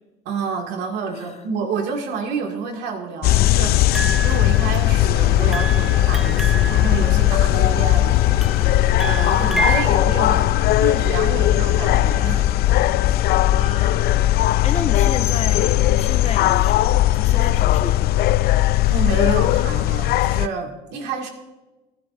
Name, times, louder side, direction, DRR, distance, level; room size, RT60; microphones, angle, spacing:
voice 1, 0.3-8.2 9.0-12.6 18.9-21.3, right 5 dB, 85° right, 2 dB, 2.1 m, -29 dB
sound 1, 3.2-20.5, left 14 dB, 65° left, 0.4 m, -18 dB
sound 2, 3.9-5.1 5.5-7.8 8.4-9.9, right 3 dB, ahead, 0.8 m, -29 dB
sound 3, 4.9-18.1, left 2 dB, 20° left, 2.4 m, -37 dB
voice 2, 13.4-14.1 14.6-18.4, left 6 dB, 40° left, 6 dB, 1.3 m, -32 dB
29.0 x 11.0 x 2.5 m, 1.1 s
cardioid pair, 110°, 17 cm